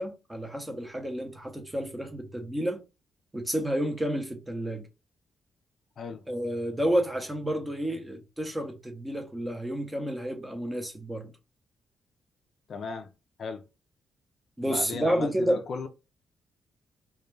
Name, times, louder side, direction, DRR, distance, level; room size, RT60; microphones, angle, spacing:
voice 1, 0.0-2.8 3.3-4.9 6.3-11.3 14.6-15.6, equal, 10° right, 0.6 m, -30 dB
voice 2, 12.7-13.1 13.4-13.6 14.7-15.9, left 5 dB, 55° left, 0.3 m, -36 dB
2.2 x 2.2 x 3.0 m
cardioid pair, 125°, 0 cm